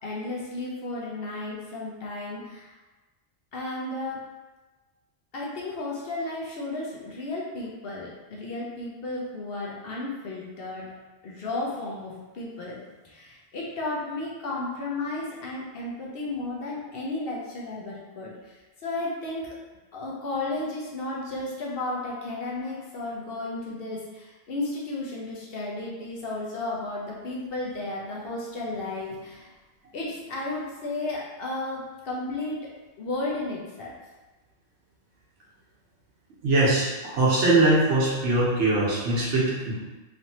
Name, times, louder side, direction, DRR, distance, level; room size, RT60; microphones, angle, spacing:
voice 1, 0.0-2.8 3.5-4.3 5.3-10.9 11.2-12.8 13.0-19.5 19.9-29.5 29.9-32.6 33.0-33.9, left 2 dB, 60° left, -4 dB, 0.8 m, -33 dB
voice 2, 36.4-39.8, right 2 dB, 75° right, -5 dB, 1.1 m, -22 dB
3.1 x 2.6 x 2.7 m, 1.2 s
omnidirectional pair, 1.2 m